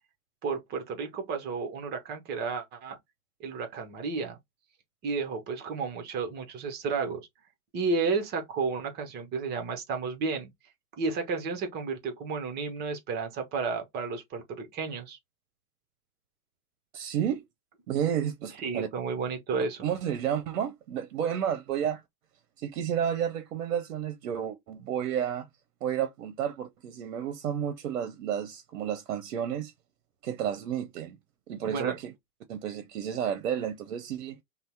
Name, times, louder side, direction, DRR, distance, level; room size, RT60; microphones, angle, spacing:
voice 1, 0.4-3.0 3.4-4.4 5.0-7.3 7.7-10.5 11.0-15.2 18.6-19.9 31.6-32.0, right 4 dB, 20° right, 0.7 m, -32 dB
voice 2, 16.9-17.4 17.9-18.9 19.8-22.0 22.6-25.5 25.8-29.7 30.2-31.2 31.5-32.1 32.5-34.4, right 9 dB, 60° right, 0.7 m, -31 dB
2.7 x 2.0 x 3.3 m
figure-of-eight pair, 105°, 46 cm